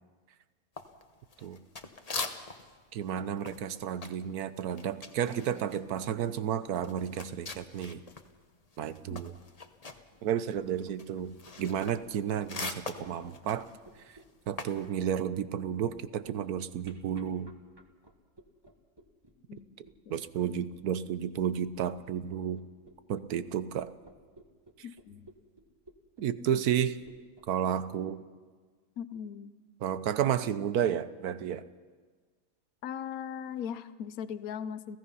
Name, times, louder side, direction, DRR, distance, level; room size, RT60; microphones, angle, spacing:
sound 1, 0.8-2.8 3.0-8.3 8.6-14.9, left 3 dB, 25° left, 1.0 m, -42 dB
voice 1, 2.9-8.0 8.8-9.3 10.2-13.7 14.5-17.5 20.1-22.6 23.1-23.9 26.2-27.0 27.5-28.2 29.8-31.6, right 9 dB, 70° right, 13 dB, 1.3 m, -32 dB
sound 2, 10.5-27.4, right 2 dB, 15° right, 1.5 m, -56 dB
voice 2, 24.8-25.3 26.5-26.6 29.0-29.5 32.8-35.0, left 8 dB, 65° left, 13 dB, 1.2 m, -39 dB
29.5 x 16.5 x 5.6 m, 1.5 s
omnidirectional pair, 1.7 m